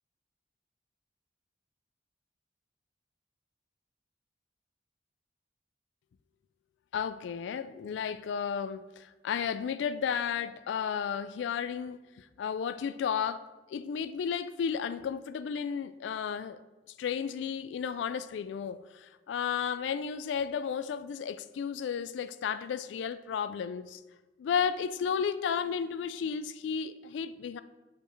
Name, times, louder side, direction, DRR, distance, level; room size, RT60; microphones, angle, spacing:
voice 1, 6.9-16.6 17.0-24.0 24.4-27.6, left 7 dB, 85° left, 13 dB, 0.3 m, -33 dB
6.7 x 5.2 x 3.2 m, 1.1 s
head